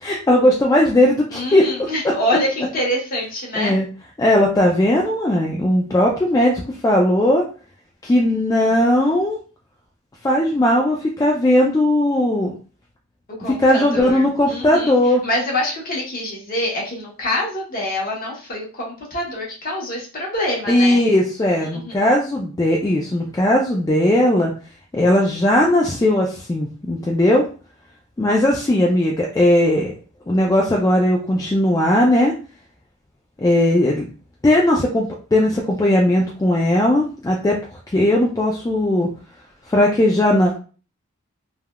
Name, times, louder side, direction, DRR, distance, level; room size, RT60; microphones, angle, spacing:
voice 1, 0.0-1.7 3.5-3.9 4.2-7.5 8.0-9.4 10.2-12.5 13.6-15.2 20.7-24.5 24.9-27.5 28.2-29.9 30.3-32.3 33.4-34.1 34.4-37.6 37.9-39.1 39.7-40.5, left 1 dB, 15° left, -2 dB, 0.3 m, -17 dB
voice 2, 1.3-3.7 13.3-21.0 21.6-22.1, left 1 dB, 45° left, -3 dB, 1.0 m, -26 dB
3.3 x 2.3 x 2.2 m, 0.38 s
head